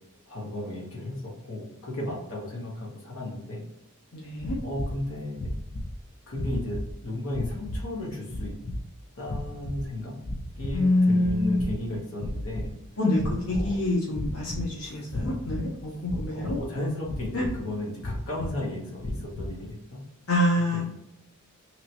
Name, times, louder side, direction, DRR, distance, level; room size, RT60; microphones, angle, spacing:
voice 1, 0.3-3.6 4.6-5.5 6.3-8.5 9.1-10.1 10.6-12.7 13.5-13.8 14.8-15.4 16.3-20.0 20.7-20.8, left 1 dB, 70° left, -4 dB, 1.1 m, -34 dB
voice 2, 4.1-4.6 10.7-11.8 13.0-16.6 17.3-17.4 20.3-20.8, left 1 dB, 90° left, -4 dB, 1.0 m, -26 dB
sound 1, 4.4-5.0 5.3-6.0 6.3-6.9 7.3-7.9 8.3-8.8 9.2-9.9 10.2-10.9 11.2-11.8 12.1-12.7 13.1-13.8 14.1-14.7 15.1-15.6 16.1-16.7 17.0-17.6 18.0-18.5 19.0-19.6, left 1 dB, 30° left, 0.3 m, -34 dB
3.0 x 2.8 x 2.8 m, 0.88 s
head